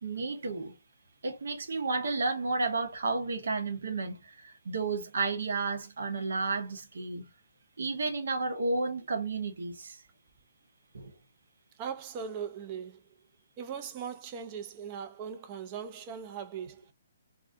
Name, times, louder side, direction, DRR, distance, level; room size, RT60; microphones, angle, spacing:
voice 1, 0.0-0.8 1.2-7.3 7.8-10.0 10.9-11.1, right 3 dB, 65° right, 0.7 m, -32 dB
voice 2, 11.8-13.0 13.6-16.9, right 7 dB, 30° right, 0.4 m, -39 dB
2.5 x 2.1 x 2.6 m
figure-of-eight pair, 130°, 0 cm